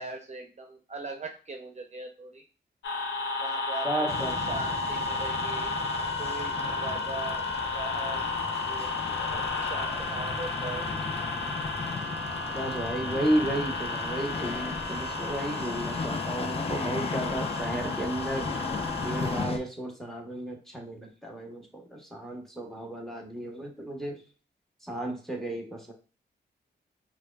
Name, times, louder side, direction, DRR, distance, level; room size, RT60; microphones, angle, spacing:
voice 1, 0.0-2.4 3.4-4.1 4.4-5.7 6.2-10.9, right 3 dB, 40° right, 2 dB, 0.7 m, -40 dB
sound 1, 2.8-19.5, left 3 dB, 90° left, 0.6 m, -33 dB
voice 2, 3.8-4.4 12.5-18.5 19.0-24.2 24.8-25.9, right 1 dB, ahead, 2 dB, 1.0 m, -33 dB
sound 2, 4.1-19.6, left 4 dB, 30° left, 0.5 m, -37 dB
4.3 x 2.3 x 2.3 m, 0.36 s
cardioid pair, 65°, 19 cm